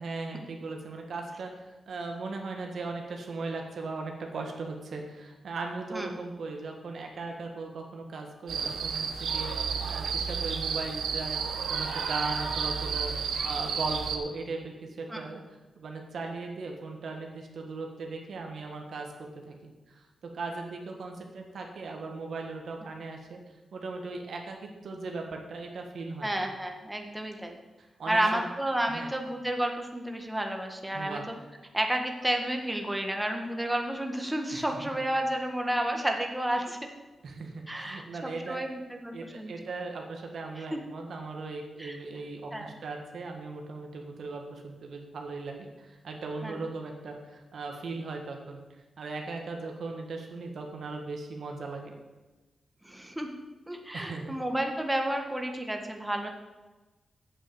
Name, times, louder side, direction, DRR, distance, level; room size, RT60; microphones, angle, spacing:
voice 1, 0.0-1.5 1.9-20.0 20.3-23.4 23.7-26.4 28.0-28.5 28.9-29.1 30.9-31.2 34.5-34.6 37.2-38.6 39.1-48.6 49.0-51.9 53.9-54.3, right 3 dB, 75° right, 2 dB, 1.7 m, -38 dB
sound 1, 8.5-14.2, right 6 dB, 90° right, 0.9 m, -31 dB
voice 2, 26.2-27.6 28.1-31.3 31.7-36.9 37.7-39.5 40.6-40.8 41.8-42.0 42.5-42.7 46.4-46.6 52.8-53.3 53.7-56.3, right 1 dB, 10° right, 3 dB, 1.6 m, -31 dB
8.4 x 7.4 x 7.1 m, 1.2 s
cardioid pair, 65°, 0 cm